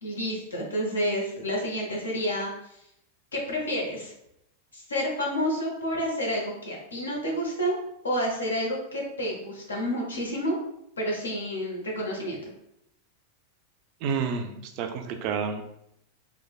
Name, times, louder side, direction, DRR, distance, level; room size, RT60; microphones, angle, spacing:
voice 1, 0.0-2.8 3.3-4.1 4.7-7.8 8.0-10.6 11.0-12.4, equal, 75° left, -2 dB, 0.8 m, -29 dB
voice 2, 14.0-15.6, right 6 dB, 45° right, 6 dB, 0.3 m, -29 dB
3.1 x 2.2 x 2.4 m, 0.77 s
figure-of-eight pair, 90°, 0 cm